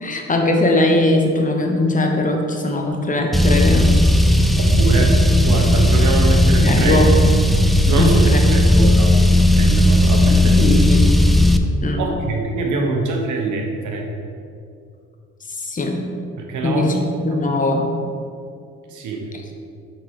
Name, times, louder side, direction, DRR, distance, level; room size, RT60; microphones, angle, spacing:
voice 1, 0.0-4.0 6.6-7.1 7.9-8.4 10.4-11.1 11.8-12.0 15.5-16.1 16.6-17.9, left 2 dB, 25° left, 2 dB, 1.0 m, -20 dB
Car, 3.3-11.6, left 1 dB, ahead, 0.3 m, -15 dB
voice 2, 4.5-5.2 5.4-7.0 7.9-9.1 9.5-10.6 12.0-14.1 16.4-17.0 17.3-17.4 18.9-19.3, right 3 dB, 75° right, 2 dB, 1.1 m, -23 dB
5.8 x 4.5 x 4.8 m, 2.4 s
cardioid pair, 90°, 30 cm